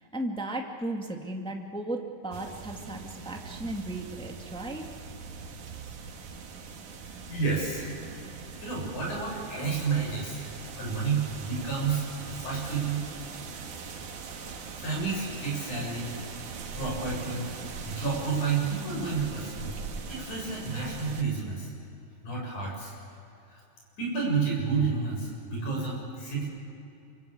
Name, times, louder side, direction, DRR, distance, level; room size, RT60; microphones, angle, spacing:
voice 1, 0.0-4.8, right 1 dB, ahead, 1 dB, 1.6 m, -35 dB
sound 1, 2.3-21.2, right 5 dB, 85° right, 3.4 m, -41 dB
voice 2, 7.1-7.9 8.6-10.5 10.7-13.1 14.8-16.2 16.8-17.5 17.8-19.7 20.1-21.7 22.2-22.9 23.5-23.6 24.0-26.5, right 4 dB, 85° left, -2 dB, 8.9 m, -30 dB
27.0 x 25.0 x 8.7 m, 2.8 s
omnidirectional pair, 3.4 m